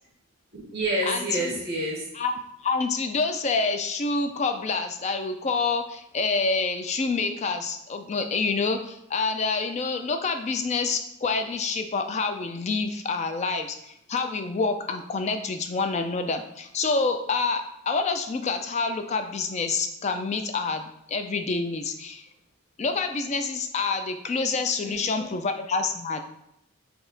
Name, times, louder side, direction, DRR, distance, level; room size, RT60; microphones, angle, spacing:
voice 1, 0.5-2.1 24.8-25.3, right 1 dB, 50° right, -4 dB, 1.1 m, -29 dB
voice 2, 1.0-1.5 2.1-2.3 2.6-22.2 22.8-26.2, left 4 dB, 30° left, 7 dB, 0.3 m, -27 dB
4.1 x 2.8 x 3.9 m, 0.80 s
head